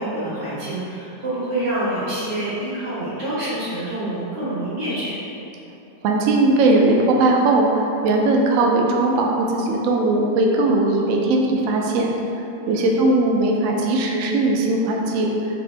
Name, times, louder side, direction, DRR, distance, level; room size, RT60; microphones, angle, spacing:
voice 1, 0.0-5.2 12.6-13.0, right 1 dB, 70° right, -12 dB, 2.1 m, -27 dB
voice 2, 6.0-12.1 12.7-15.3, right 2 dB, 85° right, 0 dB, 0.7 m, -19 dB
4.3 x 2.8 x 3.2 m, 2.9 s
omnidirectional pair, 1.9 m